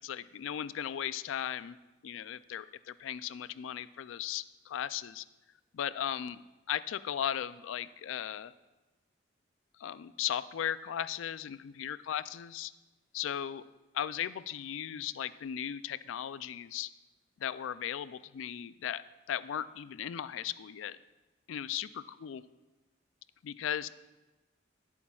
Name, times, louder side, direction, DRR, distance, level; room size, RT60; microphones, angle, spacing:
voice 1, 0.0-1.8 2.0-5.2 5.7-6.4 6.7-8.5 9.8-12.7 13.1-13.6 13.9-16.9 17.4-19.0 19.3-21.0 21.5-22.4 23.4-23.9, left 10 dB, 90° left, 16 dB, 0.3 m, -37 dB
18.0 x 8.4 x 2.3 m, 1.1 s
head